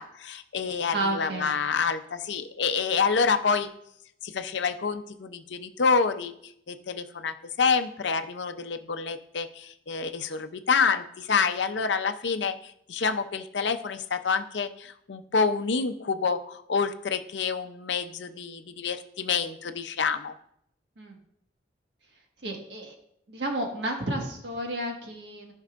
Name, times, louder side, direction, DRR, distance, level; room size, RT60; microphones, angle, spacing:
voice 1, 0.0-3.7 4.2-6.3 6.7-20.3, left 5 dB, 80° left, 8 dB, 0.6 m, -27 dB
voice 2, 0.9-1.5 21.0-21.2 22.4-22.9 23.3-25.5, right 1 dB, 70° right, 1 dB, 1.6 m, -31 dB
14.0 x 5.4 x 2.5 m, 0.73 s
head